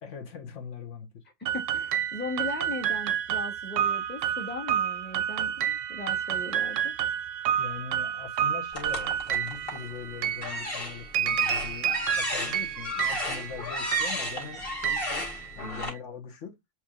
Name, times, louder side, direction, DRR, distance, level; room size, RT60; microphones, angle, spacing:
voice 1, 0.0-1.2 7.6-15.3 15.5-16.5, left 7 dB, 65° left, 1.3 m, -41 dB
voice 2, 1.4-6.9, left 2 dB, 10° left, 0.8 m, -38 dB
sound 1, 1.5-15.9, right 10 dB, 70° right, 0.9 m, -30 dB
sound 2, 8.7-9.9 10.3-15.9, left 2 dB, 45° left, 1.8 m, -34 dB
7.3 x 2.9 x 2.4 m
omnidirectional pair, 1.4 m